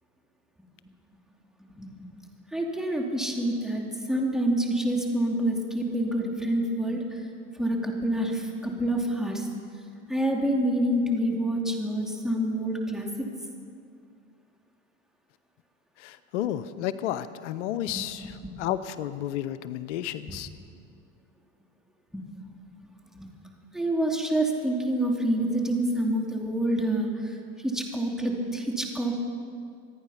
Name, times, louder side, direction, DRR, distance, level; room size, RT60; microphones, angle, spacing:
voice 1, 2.5-3.8 4.1-7.2 7.5-9.5 10.1-13.3 17.9-18.5 22.1-22.2 23.1-23.3 23.7-27.4 27.6-29.3, right 1 dB, ahead, 0 dB, 2.9 m, -27 dB
voice 2, 16.0-20.5, left 11 dB, 85° left, 14 dB, 0.7 m, -32 dB
26.0 x 9.7 x 5.7 m, 2.3 s
hypercardioid pair, 95°, 35 cm